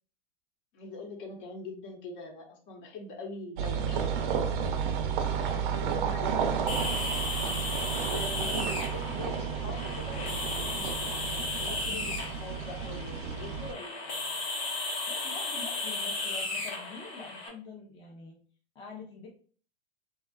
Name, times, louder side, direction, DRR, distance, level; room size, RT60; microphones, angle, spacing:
voice 1, 0.7-4.7 5.4-6.6 7.7-14.4, left 3 dB, 55° left, 2 dB, 0.9 m, -43 dB
sound 1, 3.6-13.7, right 7 dB, 55° right, 0.5 m, -32 dB
sound 2, 6.7-17.5, left 3 dB, 80° left, 0.9 m, -35 dB
voice 2, 15.1-18.4 18.7-19.3, left 4 dB, 15° left, -1 dB, 0.4 m, -45 dB
2.7 x 2.3 x 2.2 m, 0.43 s
hypercardioid pair, 120°, 31 cm